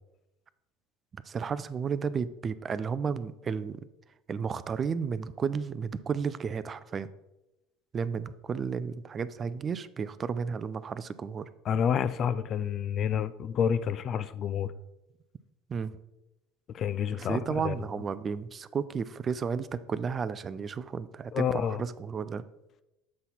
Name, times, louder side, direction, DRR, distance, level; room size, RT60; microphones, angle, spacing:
voice 1, 1.2-3.8 4.3-7.1 7.9-11.5 15.7-15.9 17.2-22.4, right 6 dB, 35° right, 15 dB, 0.3 m, -33 dB
voice 2, 11.7-14.7 16.7-17.7 21.3-21.8, left 8 dB, 45° left, 15 dB, 0.3 m, -29 dB
7.4 x 3.9 x 4.2 m, 0.95 s
hypercardioid pair, 75°, 0 cm